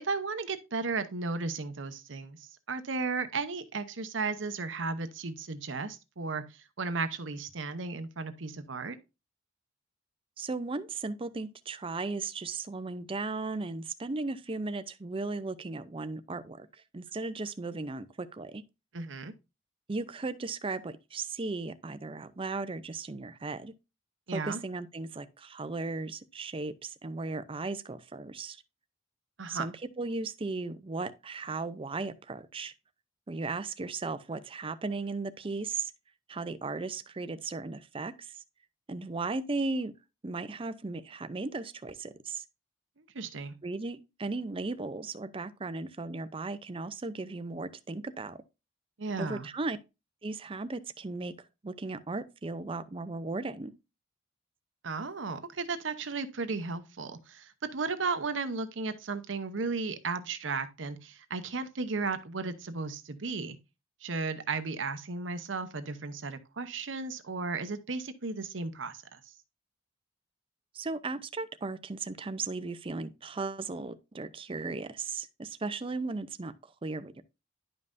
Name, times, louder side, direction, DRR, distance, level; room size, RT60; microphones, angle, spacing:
voice 1, 0.0-9.0 18.9-19.3 24.3-24.6 29.4-29.7 43.0-43.5 49.0-49.5 54.8-63.6 64.0-69.2, right 4 dB, 80° right, 0.9 m, -35 dB
voice 2, 10.4-16.7 16.9-18.6 19.9-23.7 24.3-28.6 29.5-32.7 33.3-35.9 36.3-38.3 38.9-39.9 40.2-42.4 43.6-48.4 49.2-49.8 50.2-51.3 51.6-53.8 70.7-77.2, right 3 dB, 30° right, 0.5 m, -36 dB
11.0 x 5.4 x 2.6 m
head